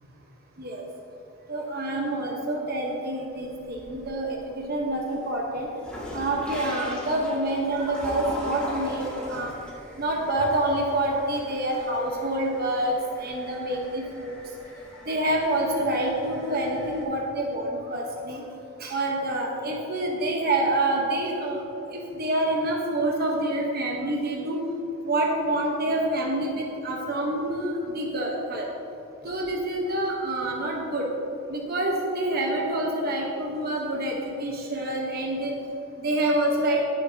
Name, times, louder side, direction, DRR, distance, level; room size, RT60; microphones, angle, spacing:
voice 1, 1.5-5.7 6.1-9.5 10.0-14.4 15.1-18.4 18.8-21.6 21.9-24.6 25.1-28.7 29.2-31.1 31.5-35.5 36.0-36.8, right 1 dB, 45° right, -1 dB, 1.2 m, -27 dB
sound 1, 3.3-4.3 4.7-17.0, left 1 dB, 5° left, 2.2 m, -40 dB
17.0 x 7.8 x 2.9 m, 3.0 s
head